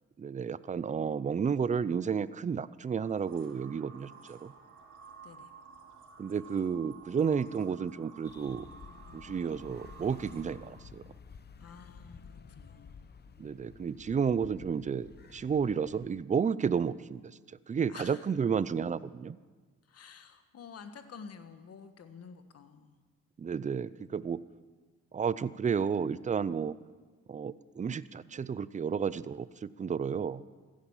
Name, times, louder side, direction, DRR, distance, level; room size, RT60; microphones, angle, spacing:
voice 1, 0.2-4.5 6.2-8.7 9.1-11.1 13.4-19.4 23.4-24.4 25.1-26.8 27.3-30.4, right 6 dB, 25° right, 18 dB, 0.5 m, -32 dB
sound 1, 2.8-10.9, right 5 dB, 85° right, 2.4 m, -53 dB
sound 2, 8.2-16.1, left 6 dB, 35° left, 0.8 m, -52 dB
voice 2, 11.6-13.0 17.9-18.2 19.9-23.0, left 6 dB, 55° left, 9 dB, 1.4 m, -50 dB
15.5 x 10.5 x 7.2 m, 1.4 s
cardioid pair, 90°, 30 cm